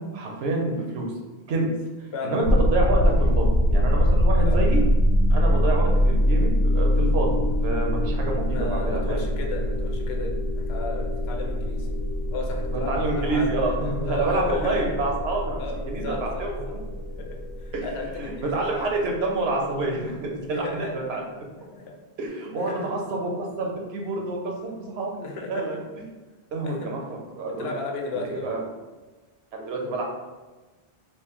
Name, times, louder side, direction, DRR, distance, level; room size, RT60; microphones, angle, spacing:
voice 1, 0.1-1.1 1.5-1.7 2.2-4.8 5.3-7.3 7.6-9.2 12.7-15.6 15.9-16.6 17.7-17.8 18.2-21.2 22.2-25.8 26.5-27.7 28.1-28.6 29.5-30.0, right 2 dB, 75° right, 0 dB, 0.9 m, -28 dB
sound 1, 2.4-19.4, equal, 55° left, 0.6 m, -24 dB
voice 2, 8.5-11.9 12.3-13.5 14.1-15.0 15.6-16.8 17.2-19.0 20.5-21.2 21.7-21.9 22.6-22.9 25.1-25.8 26.6-26.9 27.6-28.5, left 3 dB, 75° left, 1 dB, 0.8 m, -35 dB
3.1 x 2.5 x 3.5 m, 1.2 s
omnidirectional pair, 1.1 m